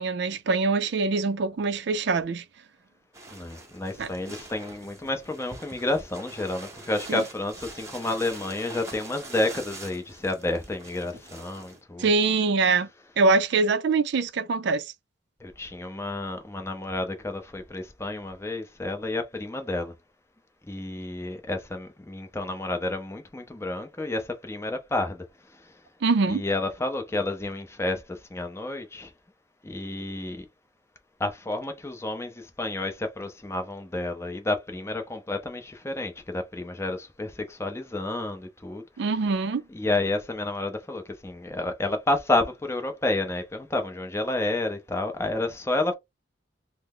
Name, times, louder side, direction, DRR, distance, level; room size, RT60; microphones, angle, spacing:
voice 1, 0.0-2.4 4.0-4.1 7.1-7.2 12.0-12.9 13.2-14.9 26.0-26.4 39.0-39.6, right 4 dB, 65° right, 0.4 m, -24 dB
sound 1, 3.1-11.8, right 2 dB, 15° right, 0.8 m, -44 dB
voice 2, 3.3-12.1 15.4-19.9 20.7-25.7 26.3-29.1 29.6-30.5 31.2-38.8 39.7-45.9, left 2 dB, 15° left, 0.6 m, -30 dB
3.3 x 2.0 x 3.6 m
head